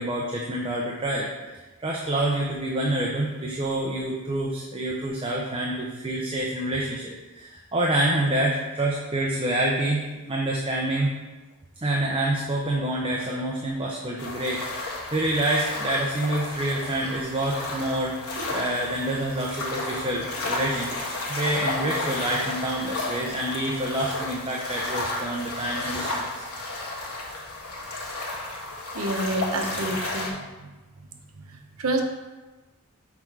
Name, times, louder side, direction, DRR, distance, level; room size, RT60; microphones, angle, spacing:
voice 1, 0.0-1.3 1.8-11.1 11.8-18.2 18.5-21.0 21.3-26.4, right 1 dB, 25° right, -2 dB, 0.7 m, -27 dB
sound 1, 14.2-30.3, left 2 dB, 80° left, 1.3 m, -32 dB
voice 2, 28.9-30.3 31.5-32.0, right 2 dB, 75° right, 3 dB, 0.9 m, -28 dB
6.0 x 4.5 x 4.7 m, 1.2 s
head